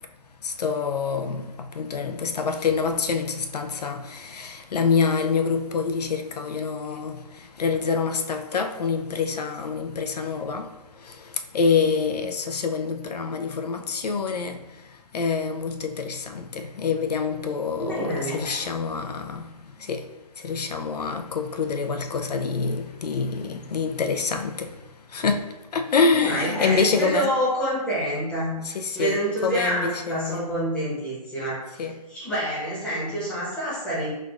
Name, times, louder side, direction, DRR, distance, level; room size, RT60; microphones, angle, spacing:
voice 1, 0.4-7.2 7.6-10.7 11.0-11.2 11.5-14.6 15.1-19.5 19.8-20.0 20.4-24.7 25.1-25.5 25.7-27.3 28.6-30.4 31.8-31.9, left 5 dB, 80° left, 0.5 m, -26 dB
voice 2, 17.8-18.4 26.1-28.6 28.9-31.8 32.1-34.1, right 1 dB, 5° left, 0.9 m, -27 dB
5.8 x 2.4 x 2.4 m
hypercardioid pair, 155°, 20 cm